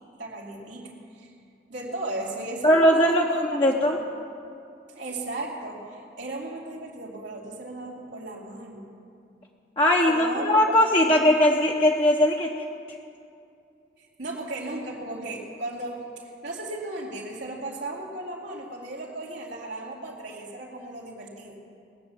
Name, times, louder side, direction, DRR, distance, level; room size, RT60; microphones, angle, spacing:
voice 1, 0.2-1.3 1.7-3.6 3.9-4.0 5.0-8.9 10.1-10.6 11.0-11.3 14.0-21.6, right 2 dB, 90° right, -4 dB, 2.6 m, -36 dB
voice 2, 2.6-3.2 3.5-4.0 9.8-12.5, left 1 dB, 30° left, -1 dB, 0.8 m, -19 dB
20.0 x 7.0 x 8.8 m, 2.6 s
head